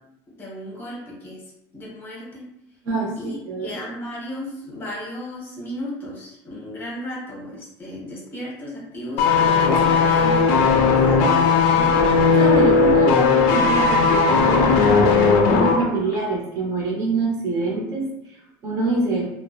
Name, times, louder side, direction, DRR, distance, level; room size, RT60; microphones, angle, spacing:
voice 1, 0.4-1.4 1.7-2.4 3.2-11.6, left 1 dB, 25° left, -4 dB, 0.8 m, -35 dB
voice 2, 2.8-3.7 11.7-18.1 18.6-19.3, right 3 dB, 40° right, -3 dB, 0.7 m, -25 dB
sound 1, 9.2-15.9 16.1-16.3, left 4 dB, 75° left, 0.4 m, -17 dB
2.6 x 2.1 x 2.4 m, 0.84 s
cardioid pair, 160°, 8 cm